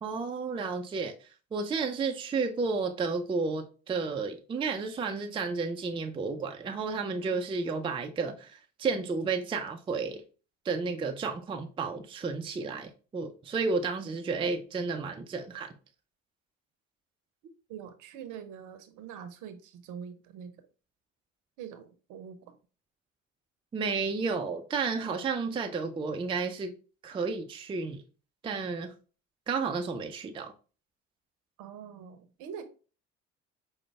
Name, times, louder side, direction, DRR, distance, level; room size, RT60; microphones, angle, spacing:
voice 1, 0.0-1.1 1.5-10.2 10.6-15.7 23.7-26.7 27.0-28.0 28.4-28.9 29.5-30.5, right 4 dB, 15° right, 0.4 m, -32 dB
voice 2, 17.7-20.5 21.6-22.6 31.6-32.6, right 8 dB, 55° right, 0.7 m, -44 dB
5.0 x 2.1 x 3.3 m
figure-of-eight pair, 60°, 38 cm